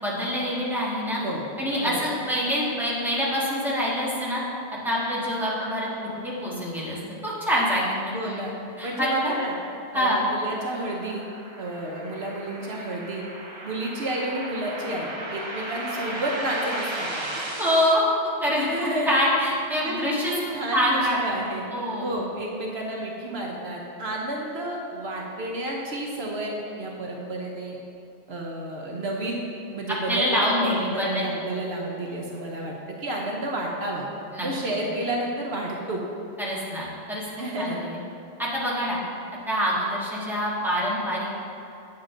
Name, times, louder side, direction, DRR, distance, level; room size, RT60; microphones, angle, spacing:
voice 1, 0.0-1.2 1.6-4.4 4.8-5.9 6.2-7.0 7.2-8.4 8.8-9.4 9.9-10.2 17.4-18.0 18.4-20.3 20.7-21.2 21.7-22.2 30.1-31.4 34.3-34.5 36.4-37.2 37.6-38.0 38.4-39.0 39.5-41.4, equal, ahead, -7 dB, 1.6 m, -25 dB
voice 2, 8.1-8.5 8.8-9.5 9.9-11.2 11.6-13.2 13.6-17.2 18.6-19.1 19.8-21.6 22.0-27.8 28.3-34.0 34.4-36.0 37.4-37.8, right 1 dB, 65° right, -1 dB, 1.1 m, -31 dB
sound 1, 10.6-17.9, right 2 dB, 30° right, 0.6 m, -35 dB
8.5 x 7.3 x 3.8 m, 2.8 s
omnidirectional pair, 1.2 m